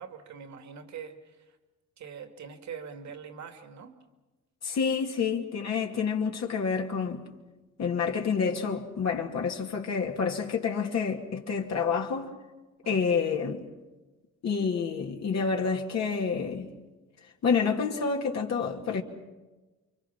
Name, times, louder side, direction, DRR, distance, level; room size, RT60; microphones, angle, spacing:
voice 1, 0.0-1.6 2.0-4.0 12.8-13.3, right 6 dB, 65° right, 2.4 m, -43 dB
voice 2, 4.6-7.2 7.8-12.3 12.9-13.7 14.4-16.7 17.4-19.0, left 5 dB, 60° left, 2.5 m, -28 dB
29.0 x 24.0 x 5.9 m
cardioid pair, 90°, 30 cm